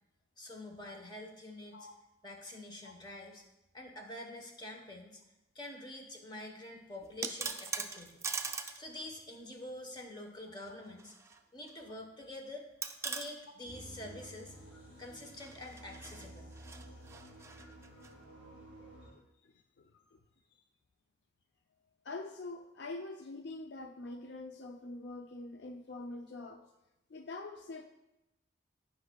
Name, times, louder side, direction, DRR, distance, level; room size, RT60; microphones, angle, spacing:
voice 1, 0.4-1.9 2.2-3.4 3.7-5.2 5.5-8.2 8.8-11.1 11.5-12.7 13.0-14.6 15.0-16.5, left 1 dB, 25° left, 2 dB, 1.0 m, -46 dB
sound 1, 7.0-8.8 9.1-9.2 10.7-11.4 11.7-11.8 12.8-13.3 15.2-18.1, right 5 dB, 15° right, 0.4 m, -41 dB
sound 2, 13.7-19.1, right 1 dB, 85° left, 2.1 m, -52 dB
voice 2, 19.0-20.2 22.0-26.7 27.1-27.9, left 2 dB, 65° left, 6 dB, 0.4 m, -45 dB
16.0 x 5.6 x 2.3 m, 0.93 s
head